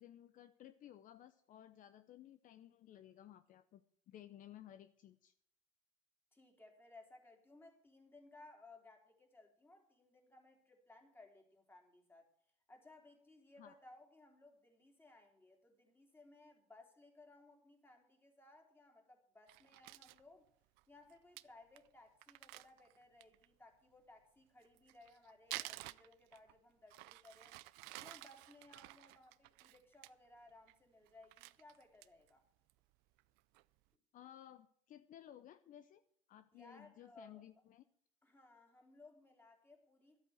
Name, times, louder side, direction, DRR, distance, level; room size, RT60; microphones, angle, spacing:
voice 1, 0.0-3.8 4.1-5.3 13.6-13.8 34.1-36.0 36.3-37.8, left 11 dB, 55° left, 11 dB, 0.7 m, -57 dB
voice 2, 6.3-12.3 12.7-20.5 20.9-27.6 28.0-32.4 36.5-37.4 38.2-40.2, left 2 dB, 15° left, 2 dB, 3.5 m, -62 dB
Crumpling crinkling, 19.5-20.2 20.8-20.9 21.1-21.2 21.4-21.5 21.8-21.9 22.2-23.5 24.6-26.5 26.9-30.1 30.5-30.8 31.1-32.3 32.7-32.8 33.2-33.6, right 21 dB, 80° right, 0.5 m, -51 dB
12.0 x 8.7 x 7.9 m, 0.65 s
supercardioid pair, 95°, 17 cm